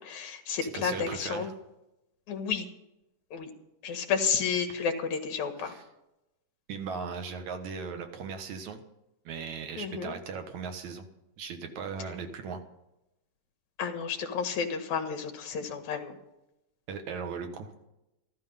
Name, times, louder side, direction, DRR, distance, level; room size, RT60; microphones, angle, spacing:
voice 1, 0.0-1.5 2.3-2.7 3.3-3.5 3.8-5.7 9.8-10.1 13.8-16.2, left 6 dB, 70° left, 6 dB, 3.0 m, -31 dB
voice 2, 0.6-1.5 5.6-5.8 6.7-8.8 9.3-11.1 11.4-12.6 16.9-17.7, right 5 dB, 70° right, 6 dB, 2.7 m, -38 dB
13.5 x 13.5 x 5.6 m, 0.91 s
omnidirectional pair, 3.5 m